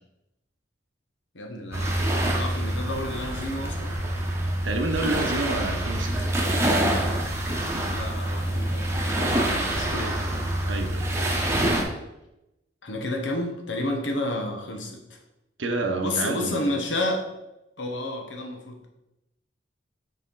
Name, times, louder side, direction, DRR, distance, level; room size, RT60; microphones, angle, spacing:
voice 1, 1.3-2.0 2.4-4.0 7.9-10.2 12.8-15.2 16.0-17.3 17.8-18.9, left 1 dB, 75° left, 2 dB, 1.1 m, -31 dB
sound 1, 1.7-11.8, right 1 dB, 15° right, 1.0 m, -26 dB
voice 2, 4.6-6.4 10.7-11.1 15.6-16.8, right 2 dB, 85° right, 4 dB, 0.9 m, -29 dB
6.6 x 4.2 x 3.9 m, 0.90 s
head